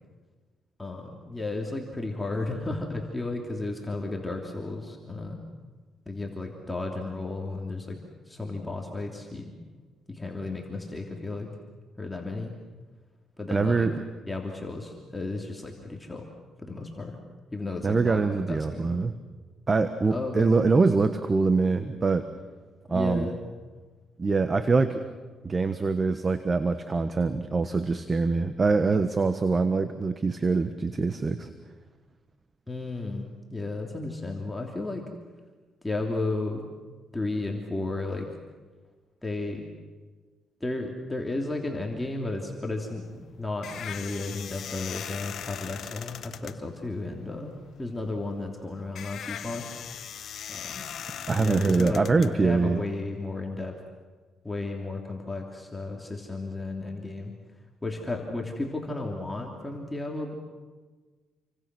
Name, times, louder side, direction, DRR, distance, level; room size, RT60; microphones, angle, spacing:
voice 1, 0.8-5.4 6.0-8.0 8.3-9.6 10.1-11.5 12.0-12.5 13.4-13.9 14.3-16.3 16.6-17.2 17.5-18.2 18.5-19.0 20.1-20.5 22.9-23.4 32.7-35.0 35.8-36.6 37.1-38.3 39.2-39.6 40.6-47.5 47.8-49.6 50.5-50.9 51.4-53.7 54.4-57.3 57.8-60.3, left 2 dB, 15° left, 1 dB, 3.1 m, -33 dB
voice 2, 13.5-14.0 17.8-19.1 19.7-22.3 22.9-23.3 24.2-25.0 25.4-31.5 51.3-52.8, right 4 dB, 30° right, 10 dB, 1.3 m, -24 dB
sound 1, 43.0-53.0, left 9 dB, 65° left, 1.2 m, -40 dB
28.5 x 24.0 x 6.3 m, 1.4 s
cardioid pair, 90°, 0 cm